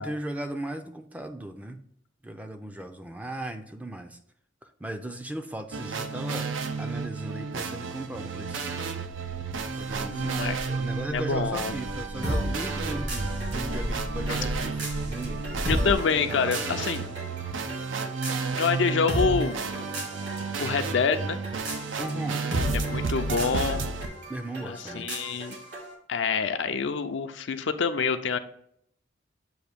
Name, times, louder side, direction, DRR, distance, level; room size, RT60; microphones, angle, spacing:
voice 1, 0.0-1.8 2.2-4.2 4.6-8.7 9.8-15.9 16.3-17.5 22.0-22.4 24.3-25.1, right 1 dB, 10° right, 6 dB, 0.4 m, -37 dB
sound 1, 5.7-24.1, right 4 dB, 80° right, 0.6 m, -32 dB
sound 2, 9.0-15.9, equal, 50° right, 1.2 m, -36 dB
voice 2, 10.1-10.6 11.1-11.8 14.3-14.4 15.7-17.0 18.6-19.6 20.6-21.4 22.7-23.8 24.6-25.5 26.1-28.4, left 5 dB, 70° left, 8 dB, 0.5 m, -27 dB
sound 3, 12.2-25.9, equal, 65° right, 2.0 m, -35 dB
7.8 x 2.6 x 5.0 m, 0.69 s
head